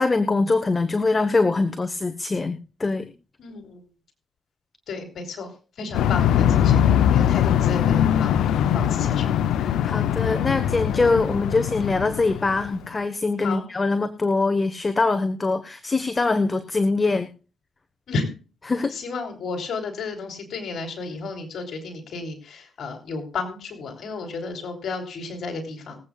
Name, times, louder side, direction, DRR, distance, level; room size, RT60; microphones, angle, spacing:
voice 1, 0.0-3.1 9.6-17.3 18.6-18.9, left 3 dB, 30° left, 8 dB, 1.2 m, -23 dB
voice 2, 3.4-3.8 4.9-5.5 5.8-6.8 7.1-8.3 8.7-9.3 13.4-13.6 18.1-18.2 19.0-26.0, left 3 dB, 65° left, 3 dB, 3.4 m, -32 dB
sound 1, 5.9-12.8, left 10 dB, 85° left, 0.6 m, -21 dB
24.5 x 8.5 x 2.4 m, 0.36 s
cardioid pair, 85°, 0 cm